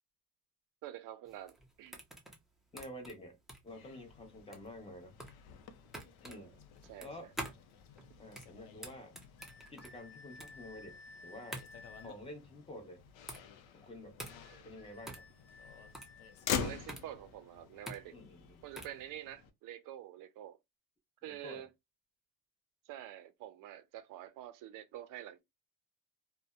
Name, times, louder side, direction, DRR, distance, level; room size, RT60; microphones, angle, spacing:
voice 1, 0.8-2.0 6.3-6.5 6.8-7.3 14.5-14.7 16.6-18.2 18.6-20.6 21.2-21.7 22.9-25.4, right 12 dB, 60° right, 0.5 m, -47 dB
sound 1, 1.3-19.0, right 1 dB, ahead, 0.5 m, -49 dB
voice 2, 2.7-3.4 3.6-5.1 6.2-6.5 7.0-7.3 8.2-9.1 9.7-11.6 12.0-13.0 13.7-14.1 14.6-15.3 18.1-18.6 21.2-21.6, left 1 dB, 15° left, 0.9 m, -49 dB
Motor vehicle (road), 3.7-19.5, left 7 dB, 80° left, 0.6 m, -46 dB
sound 2, 9.4-12.2 14.3-16.9, left 3 dB, 40° left, 1.0 m, -56 dB
2.5 x 2.1 x 2.3 m
cardioid pair, 105°, 35 cm